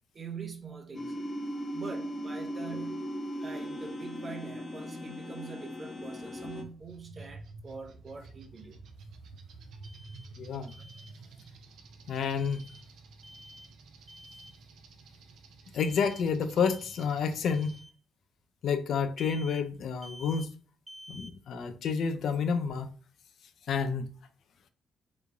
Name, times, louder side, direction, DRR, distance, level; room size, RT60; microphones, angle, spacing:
voice 1, 0.1-1.1 1.7-3.0 3.4-8.8 9.7-9.8, right 5 dB, 35° right, 0.7 m, -44 dB
sound 1, 0.9-6.6, equal, 25° left, 0.6 m, -38 dB
sound 2, 6.0-17.8, right 3 dB, 75° right, 0.6 m, -51 dB
Alarm, 9.8-10.3 10.7-11.1 12.4-12.8 13.2-13.7 14.1-14.6 15.8-16.3 16.6-17.1 17.5-17.9 19.2-19.7 20.0-20.5 20.9-21.3, equal, 10° right, 0.3 m, -50 dB
voice 2, 10.4-10.7 12.1-12.6 15.7-17.7 18.6-20.5 21.1-22.9 23.7-24.1, left 6 dB, 65° left, 0.4 m, -29 dB
3.4 x 3.1 x 2.5 m
cardioid pair, 90°, 0 cm